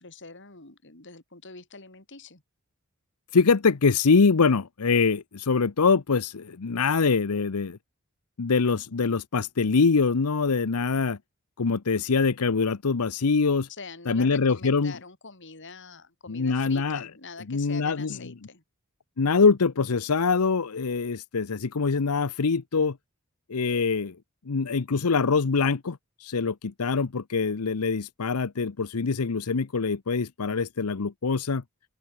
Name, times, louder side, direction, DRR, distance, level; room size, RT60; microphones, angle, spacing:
voice 1, 0.0-2.4 13.7-18.6, left 4 dB, 55° left, 3.9 m, -44 dB
voice 2, 3.3-7.8 8.4-11.2 11.6-13.7 14.1-14.9 16.3-17.1 17.5-18.2 19.2-23.0 23.5-24.2 24.5-31.6, left 4 dB, 90° left, 0.8 m, -24 dB
open air
head